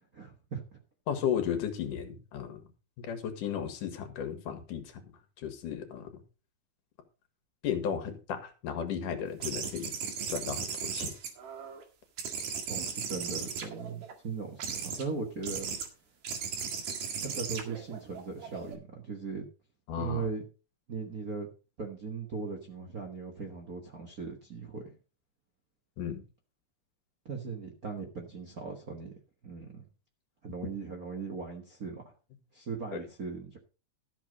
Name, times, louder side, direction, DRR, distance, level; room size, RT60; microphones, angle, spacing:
voice 1, 0.1-0.8 12.7-15.7 16.6-16.7 17.2-19.4 20.0-20.4 20.9-21.5 21.8-24.9 27.2-29.1 29.4-29.9 30.4-32.1 32.5-33.6, right 4 dB, 45° right, 2 dB, 1.2 m, -38 dB
voice 2, 1.1-2.6 3.0-5.0 5.4-6.2 7.6-9.9 10.3-11.1 19.9-20.3 26.0-26.2 32.9-33.0, left 8 dB, 80° left, 8 dB, 3.1 m, -34 dB
sound 1, 9.4-11.8 12.2-14.1 14.6-15.0 15.4-15.9 16.2-18.7, right 6 dB, 80° right, 3.6 m, -37 dB
13.0 x 6.7 x 5.2 m, 0.34 s
omnidirectional pair, 3.7 m